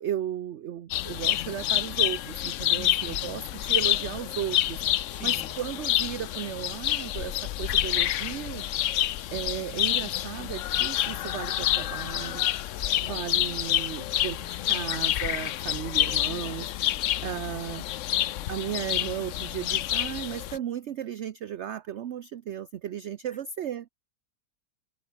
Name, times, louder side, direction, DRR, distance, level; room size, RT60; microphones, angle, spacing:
voice 1, 0.0-8.6 9.3-12.5 13.0-16.7 17.2-17.8 18.5-23.9, right 10 dB, 55° right, 0.9 m, -35 dB
sound 1, 0.9-20.6, left 13 dB, 65° left, 0.8 m, -28 dB
voice 2, 2.7-3.2 5.1-5.6 13.5-13.8 23.3-23.4, equal, 5° left, 2.7 m, -48 dB
omnidirectional pair, 1.6 m